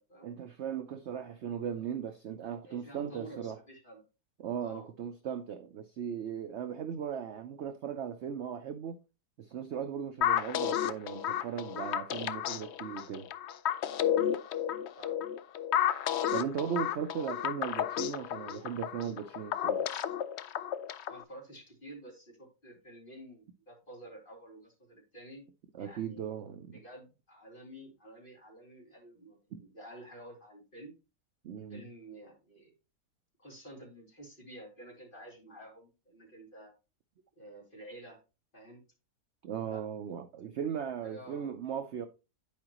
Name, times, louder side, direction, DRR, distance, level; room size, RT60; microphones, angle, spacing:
voice 1, 0.2-3.6 4.4-9.0 9.4-13.3 16.3-19.8 25.7-26.8 29.5-29.6 31.4-31.8 39.4-42.1, right 8 dB, 60° right, 0.7 m, -37 dB
voice 2, 2.6-4.0 4.6-4.9 15.0-15.2 21.1-25.5 25.8-26.4 26.7-31.0 31.7-32.7 33.4-36.7 37.4-38.2 38.5-38.8 39.6-39.9 40.4-41.5, right 1 dB, 30° left, 3.6 m, -50 dB
sound 1, 10.2-21.2, left 10 dB, 80° left, 0.6 m, -32 dB
10.5 x 4.8 x 2.9 m
omnidirectional pair, 1.7 m